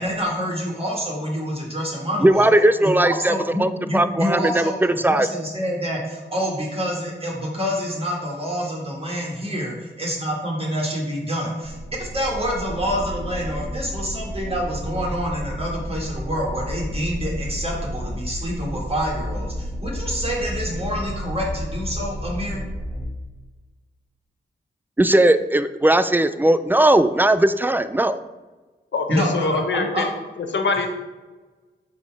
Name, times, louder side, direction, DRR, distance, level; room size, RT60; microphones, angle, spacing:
voice 1, 0.0-2.5 2.8-3.0 3.3-22.6 29.1-30.1, equal, 30° right, -3 dB, 1.7 m, -27 dB
voice 2, 2.2-3.3 3.6-5.3 25.0-28.2, right 1 dB, 10° right, 12 dB, 0.3 m, -18 dB
sound 1, 11.6-23.0, equal, 10° left, 1.5 m, -31 dB
voice 3, 28.9-30.1 30.5-30.9, left 3 dB, 70° left, 5 dB, 0.9 m, -23 dB
5.9 x 3.8 x 4.8 m, 1.2 s
cardioid pair, 60°, 20 cm